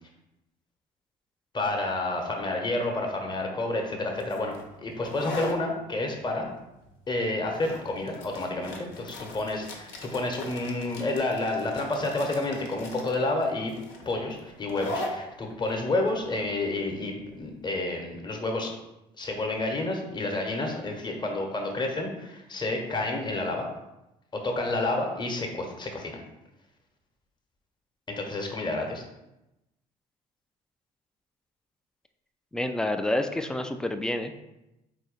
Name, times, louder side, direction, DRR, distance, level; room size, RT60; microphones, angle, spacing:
voice 1, 1.5-6.5 7.1-13.7 14.1-18.7 19.2-23.7 24.3-26.2 28.1-29.0, left 2 dB, 20° left, 2 dB, 0.9 m, -30 dB
sound 1, 4.2-17.6, left 1 dB, 65° left, 0.8 m, -40 dB
voice 2, 32.5-34.4, left 1 dB, 5° left, 8 dB, 0.3 m, -28 dB
4.1 x 2.6 x 3.9 m, 0.92 s
figure-of-eight pair, 50°, 21 cm